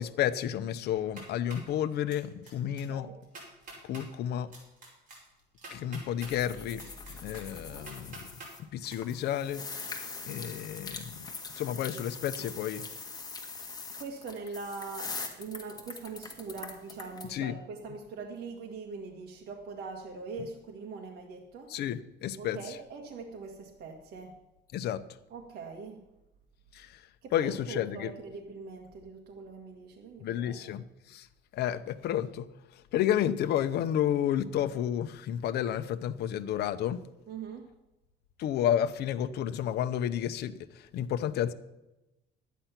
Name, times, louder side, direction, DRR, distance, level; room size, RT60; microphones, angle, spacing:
voice 1, 0.0-3.1 3.8-4.5 5.7-6.8 7.2-8.2 8.6-9.6 10.3-11.3 11.6-12.8 17.3-17.6 21.7-22.6 24.7-25.0 26.7-27.0 27.3-28.1 30.2-31.3 31.5-32.5 32.7-37.0 38.4-41.5, left 10 dB, 65° left, 11 dB, 0.7 m, -31 dB
sound 1, 0.9-1.7 2.1-2.5 2.8-2.9 3.2-4.0 4.5-6.3 6.8-8.5 8.9-9.0, right 2 dB, 45° right, 5.1 m, -47 dB
sound 2, 6.2-8.6 8.8-17.2, left 4 dB, 20° left, 1.7 m, -42 dB
voice 2, 14.0-21.7 22.4-24.3 25.3-26.0 27.2-30.8 37.3-37.7, right 4 dB, 60° right, 1 dB, 1.7 m, -42 dB
11.5 x 9.2 x 5.8 m, 0.96 s
cardioid pair, 135°, 18 cm